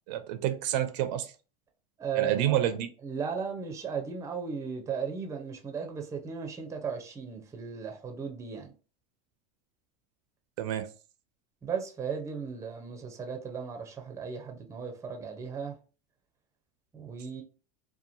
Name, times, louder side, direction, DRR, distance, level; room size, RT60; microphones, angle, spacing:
voice 1, 0.1-1.3 2.2-2.9 10.6-10.9, right 11 dB, 75° right, 0.5 m, -29 dB
voice 2, 2.0-2.6 3.0-8.7 11.6-15.7 16.9-17.4, right 6 dB, 15° right, 0.5 m, -36 dB
2.9 x 2.2 x 2.5 m
supercardioid pair, 125°, 21 cm